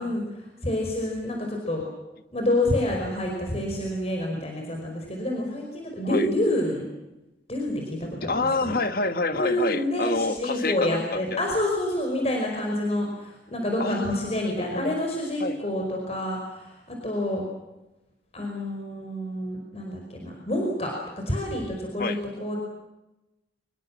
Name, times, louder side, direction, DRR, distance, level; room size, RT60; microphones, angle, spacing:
voice 1, 0.0-1.8 2.3-6.9 7.5-8.8 9.3-17.4 18.3-20.9 21.3-22.6, left 1 dB, 35° left, 1 dB, 5.2 m, -28 dB
voice 2, 8.1-11.5 13.8-15.0 15.4-15.6 22.0-22.2, left 3 dB, 55° left, 10 dB, 1.6 m, -28 dB
25.5 x 22.0 x 7.6 m, 0.99 s
head